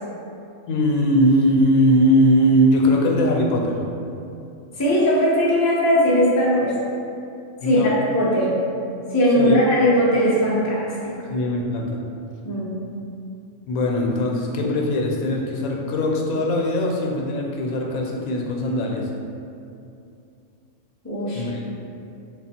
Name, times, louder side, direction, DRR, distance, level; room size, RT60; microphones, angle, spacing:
voice 1, 0.7-3.8 7.6-7.9 9.4-9.6 11.3-12.0 13.7-19.1 21.3-21.6, equal, 85° left, 0 dB, 1.0 m, -20 dB
voice 2, 4.8-6.7 7.6-8.5 9.1-11.1 12.4-12.7 21.0-21.4, equal, 20° left, -7 dB, 0.4 m, -19 dB
3.2 x 2.3 x 4.2 m, 2.6 s
omnidirectional pair, 1.4 m